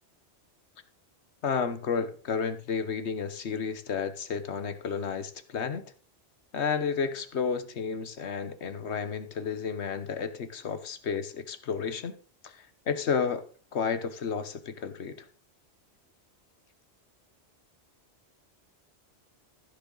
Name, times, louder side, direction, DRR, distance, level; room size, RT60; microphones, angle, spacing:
voice 1, 1.4-5.8 6.5-12.1 12.4-13.4 13.7-15.2, left 6 dB, 75° left, 1.3 m, -31 dB
15.0 x 6.7 x 3.9 m
omnidirectional pair, 1.2 m